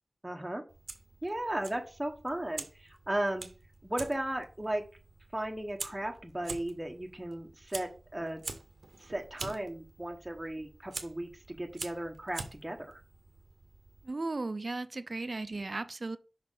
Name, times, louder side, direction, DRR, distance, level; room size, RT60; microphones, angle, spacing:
voice 1, 0.2-0.6 1.2-3.5 3.8-4.8 5.3-8.4 9.0-13.0, right 1 dB, 15° right, 1.0 m, -36 dB
Fire, 0.7-14.1, right 3 dB, 90° right, 0.7 m, -46 dB
voice 2, 14.1-16.2, right 3 dB, 55° right, 0.5 m, -36 dB
5.9 x 4.4 x 3.8 m
wide cardioid pair, 55°, 0 cm